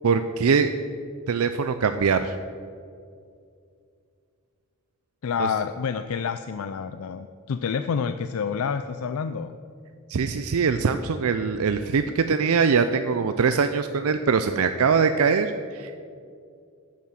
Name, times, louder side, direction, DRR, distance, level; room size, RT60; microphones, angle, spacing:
voice 1, 0.0-0.7 1.3-2.4 5.4-5.5 10.1-16.0, right 5 dB, 80° right, 9 dB, 0.5 m, -22 dB
voice 2, 5.2-9.5, left 6 dB, 80° left, 10 dB, 0.4 m, -28 dB
10.0 x 7.5 x 7.4 m, 2.4 s
head